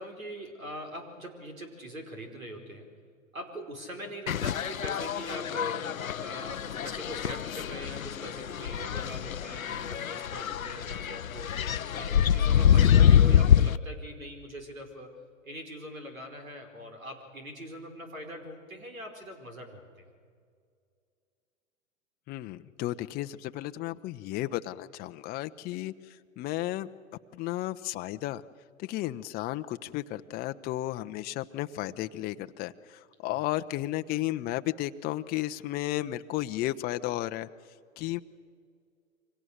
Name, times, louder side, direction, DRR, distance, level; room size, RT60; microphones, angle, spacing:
voice 1, 0.0-2.9 3.3-5.9 6.2-11.5 11.9-15.1 15.4-20.1 33.3-33.4, equal, 85° right, 5 dB, 5.2 m, -42 dB
sound 1, 4.3-13.8, left 9 dB, 85° left, 0.7 m, -25 dB
voice 2, 22.3-26.9 27.3-28.4 28.8-37.5 38.0-38.2, left 15 dB, 25° left, 9 dB, 0.7 m, -33 dB
29.0 x 24.5 x 6.6 m, 2.1 s
figure-of-eight pair, 110°, 40 cm